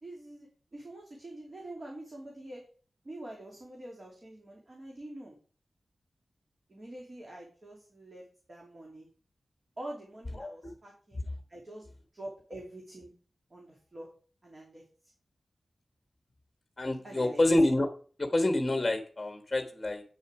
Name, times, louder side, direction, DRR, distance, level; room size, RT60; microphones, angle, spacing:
voice 1, 0.0-2.6 3.0-5.4 6.7-9.1 9.8-11.2 11.5-11.9 12.1-13.1 13.5-14.1 14.4-14.8 17.0-17.4, right 1 dB, 40° right, -1 dB, 2.8 m, -45 dB
voice 2, 10.4-10.7 16.8-17.9 18.2-20.0, left 1 dB, 25° left, 5 dB, 1.3 m, -27 dB
8.8 x 6.9 x 4.8 m, 0.41 s
wide cardioid pair, 100°, 0 cm